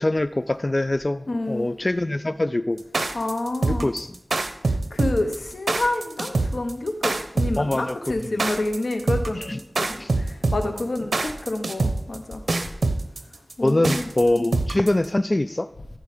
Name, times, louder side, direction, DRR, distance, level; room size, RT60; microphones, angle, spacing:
voice 1, 0.0-2.8 3.6-4.1 7.6-8.4 9.3-9.6 10.0-10.1 10.6-10.8 13.6-15.7, left 1 dB, 40° left, 12 dB, 0.3 m, -24 dB
voice 2, 1.3-1.7 3.1-3.9 4.9-12.4 13.6-14.0, left 2 dB, 85° left, 6 dB, 1.0 m, -28 dB
sound 1, 2.8-15.0, right 3 dB, 85° right, 0.7 m, -24 dB
14.0 x 4.9 x 5.0 m, 0.81 s
wide cardioid pair, 45°, 0 cm